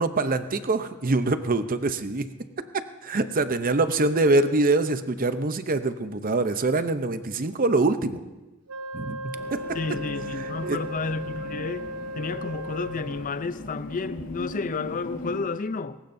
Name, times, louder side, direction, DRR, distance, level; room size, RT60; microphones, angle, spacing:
voice 1, 0.0-2.3 2.7-8.2 8.9-9.6 10.6-10.8, right 2 dB, 40° right, 0.7 m, -24 dB
Wind instrument woodwind instrument, 8.7-13.4, equal, 80° right, 0.8 m, -36 dB
sound 1, 9.3-15.4, left 1 dB, 85° left, 2.2 m, -39 dB
voice 2, 9.7-11.9 12.1-16.0, left 4 dB, 35° left, 0.5 m, -31 dB
21.0 x 18.5 x 2.7 m
head